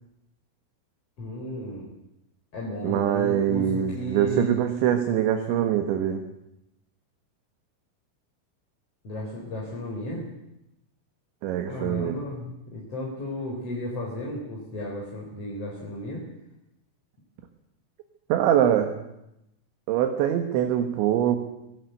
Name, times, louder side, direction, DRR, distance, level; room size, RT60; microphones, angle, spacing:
voice 1, 1.2-1.9 2.5-4.5 9.0-10.3 11.7-16.2, left 1 dB, 30° left, -3 dB, 5.0 m, -34 dB
voice 2, 2.8-6.2 11.4-12.2 18.3-18.9 19.9-21.4, right 10 dB, 70° right, 6 dB, 3.6 m, -23 dB
26.0 x 18.5 x 8.1 m, 0.87 s
omnidirectional pair, 5.8 m